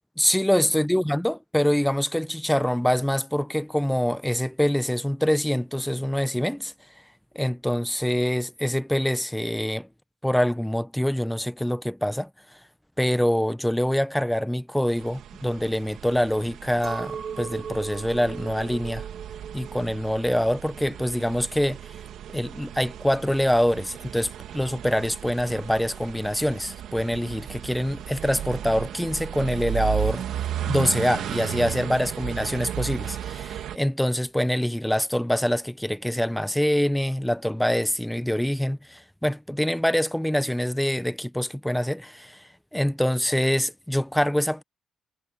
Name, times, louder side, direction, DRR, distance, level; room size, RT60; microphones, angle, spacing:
voice 1, 0.2-6.7 7.3-9.9 10.2-12.3 13.0-19.1 19.5-21.8 22.3-30.2 30.7-42.4 42.7-44.6, equal, 5° left, 0.9 m, -25 dB
sound 1, 14.9-33.8, right 11 dB, 80° right, 2.1 m, -35 dB
Chink clink, 16.8-22.3, right 7 dB, 50° right, 2.8 m, -39 dB
cardioid pair, 85°, 0 cm